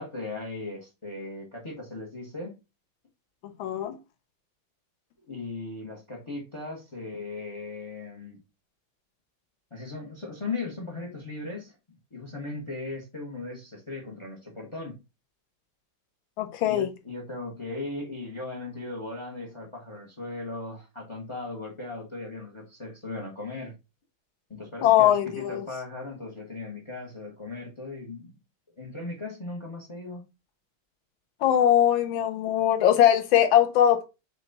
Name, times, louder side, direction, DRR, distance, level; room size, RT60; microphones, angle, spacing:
voice 1, 0.0-2.5 5.3-8.4 9.7-11.7 12.1-15.0 16.6-23.7 24.5-28.3 28.8-30.2, left 3 dB, 50° left, 0.3 m, -37 dB
voice 2, 3.6-3.9 16.4-16.9 24.8-25.6 31.4-34.1, left 11 dB, 75° left, 1.5 m, -21 dB
5.8 x 2.2 x 3.9 m
omnidirectional pair, 2.2 m